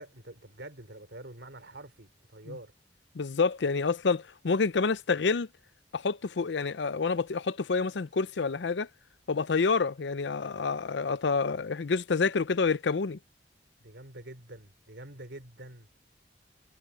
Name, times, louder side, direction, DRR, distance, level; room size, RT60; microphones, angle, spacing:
voice 1, 0.0-2.7 13.8-15.9, right 1 dB, 75° right, 3.2 m, -46 dB
voice 2, 3.1-5.5 5.9-8.9 9.3-13.2, left 4 dB, 75° left, 0.6 m, -28 dB
head